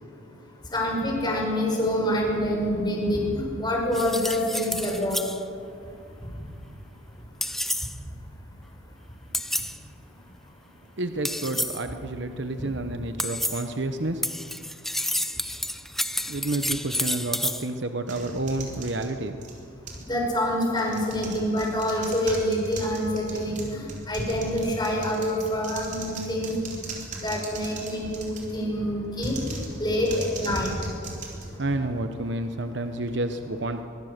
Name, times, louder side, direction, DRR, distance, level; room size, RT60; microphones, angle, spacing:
voice 1, 0.7-5.2 20.1-26.5 27.2-30.7, equal, 20° left, -1 dB, 5.4 m, -26 dB
sound 1, 3.9-5.4 7.4-8.0 9.3-9.8 11.2-11.9 13.2-13.7 14.2-17.7, left 1 dB, ahead, 0.5 m, -30 dB
voice 2, 11.0-14.3 16.3-19.4 31.6-33.8, right 2 dB, 55° right, 7 dB, 1.0 m, -30 dB
sound 2, 18.1-20.1 20.7-28.6 29.1-32.1, right 3 dB, 35° right, 3.6 m, -39 dB
23.5 x 23.5 x 6.7 m, 2.5 s
head